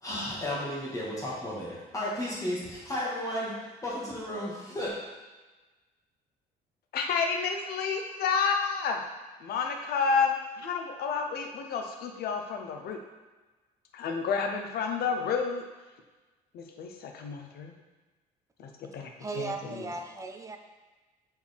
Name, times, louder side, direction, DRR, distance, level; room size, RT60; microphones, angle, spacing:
voice 1, 0.0-4.9, left 1 dB, 20° left, -6 dB, 1.9 m, -34 dB
voice 2, 6.9-9.0 9.4-13.0 13.9-15.6 16.5-17.7 18.6-19.1 19.4-19.9, left 5 dB, 65° left, 3 dB, 0.8 m, -30 dB
voice 3, 19.2-20.6, right 4 dB, 20° right, 5 dB, 0.6 m, -36 dB
6.8 x 4.4 x 3.5 m, 1.2 s
cardioid pair, 110°, 17 cm